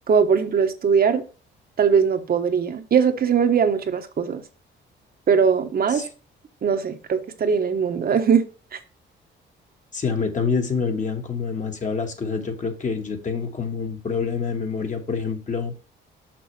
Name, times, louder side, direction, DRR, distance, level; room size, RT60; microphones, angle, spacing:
voice 1, 0.1-1.2 1.8-4.4 5.3-6.0 6.6-8.4 8.7-8.8, right 6 dB, 50° right, 1.1 m, -20 dB
voice 2, 9.9-15.7, left 5 dB, 40° left, 1.6 m, -27 dB
6.1 x 6.0 x 3.3 m
cardioid pair, 90°, 20 cm